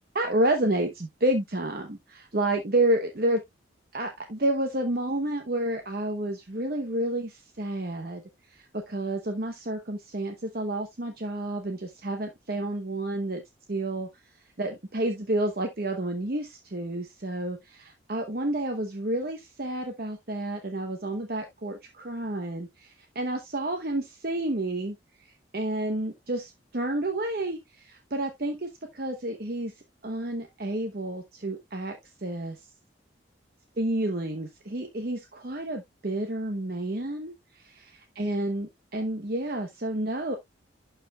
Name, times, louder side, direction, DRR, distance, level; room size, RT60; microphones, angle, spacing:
voice 1, 0.1-3.4 3.9-8.2 8.5-13.4 13.7-14.1 14.6-25.0 25.2-29.7 30.0-32.6 33.8-40.4, right 1 dB, 50° right, 0.9 m, -30 dB
12.0 x 4.9 x 2.3 m
head